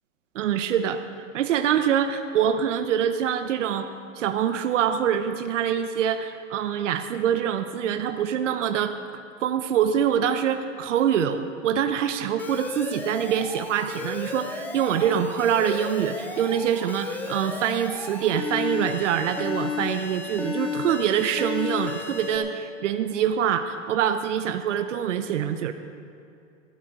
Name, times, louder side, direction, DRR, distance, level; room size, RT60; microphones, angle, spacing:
voice 1, 0.3-1.0 1.3-3.9 4.1-8.9 9.4-25.7, right 9 dB, 70° right, 8 dB, 0.9 m, -25 dB
Alarm, 12.4-22.4, left 4 dB, 5° left, 0.5 m, -33 dB
14.5 x 12.5 x 4.9 m, 2.5 s
hypercardioid pair, 145°, 38 cm